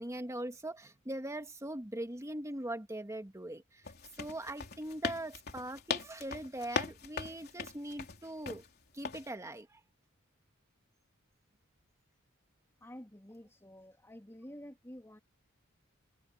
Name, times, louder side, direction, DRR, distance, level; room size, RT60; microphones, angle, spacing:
voice 1, 0.0-3.9 4.2-8.6 8.9-9.8, right 1 dB, 15° right, 1.6 m, -41 dB
sound 1, 3.8-8.7 9.0-9.3, left 5 dB, 50° left, 3.6 m, -39 dB
voice 2, 12.8-15.2, equal, 15° left, 2.8 m, -50 dB
head